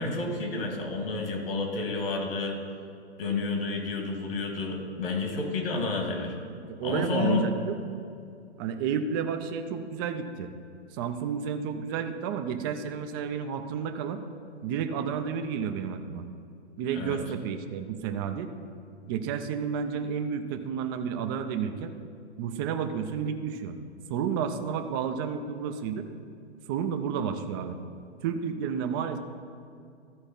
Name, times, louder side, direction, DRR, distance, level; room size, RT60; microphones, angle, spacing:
voice 1, 0.0-2.6 3.2-6.4 6.8-7.5 16.9-17.2, left 3 dB, 55° left, 2 dB, 1.9 m, -30 dB
voice 2, 6.7-7.8 8.6-10.5 10.9-14.2 14.6-16.2 16.8-18.5 19.1-21.9 22.4-23.8 24.1-26.1 26.7-27.8 28.2-29.2, right 7 dB, 20° right, 7 dB, 0.4 m, -31 dB
14.0 x 4.8 x 4.3 m, 2.4 s
figure-of-eight pair, 120°, 34 cm